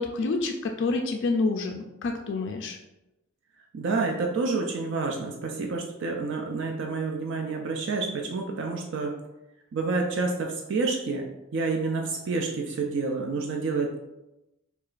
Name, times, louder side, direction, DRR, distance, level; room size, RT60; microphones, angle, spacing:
voice 1, 0.0-2.8, left 3 dB, 55° left, 3 dB, 0.3 m, -28 dB
voice 2, 3.7-9.1 9.7-11.2 11.5-14.0, right 3 dB, 60° right, 1 dB, 0.4 m, -28 dB
4.6 x 2.3 x 2.4 m, 0.96 s
head